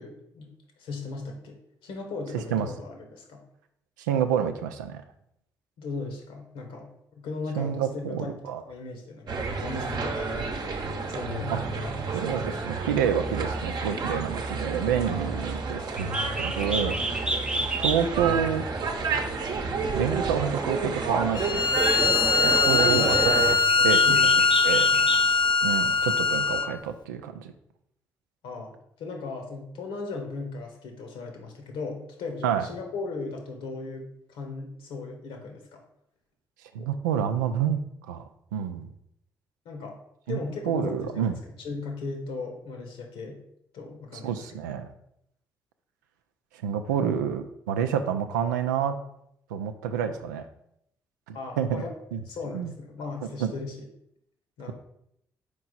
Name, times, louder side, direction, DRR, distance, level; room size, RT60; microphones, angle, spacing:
voice 1, 0.0-3.4 5.8-8.3 8.7-12.4 22.8-23.1 23.8-24.4 24.9-25.1 28.4-35.8 36.8-36.9 39.6-40.0 40.3-43.4 43.7-44.6 51.3-51.9 52.2-53.9 54.6-54.7, left 3 dB, 65° left, 3 dB, 1.2 m, -38 dB
voice 2, 2.3-2.7 4.0-5.0 7.6-8.6 11.5-11.6 12.1-17.3 17.8-18.7 19.9-21.6 22.4-23.1 23.5-24.3 24.6-24.9 25.6-27.5 32.4-32.7 36.7-37.8 38.1-38.9 40.3-40.4 40.7-41.3 44.2-44.9 46.6-49.0 49.5-50.5 51.3-51.8 52.1-52.2 52.5-52.7 53.4-53.5, right 8 dB, 80° right, 8 dB, 0.4 m, -28 dB
sound 1, 9.3-23.5, right 4 dB, 45° right, 0.8 m, -30 dB
Bird, 15.9-25.5, right 1 dB, 10° right, 0.6 m, -33 dB
Bowed string instrument, 21.4-26.7, left 4 dB, 50° left, 0.5 m, -22 dB
5.3 x 4.6 x 4.0 m, 0.75 s
figure-of-eight pair, 40°, 10 cm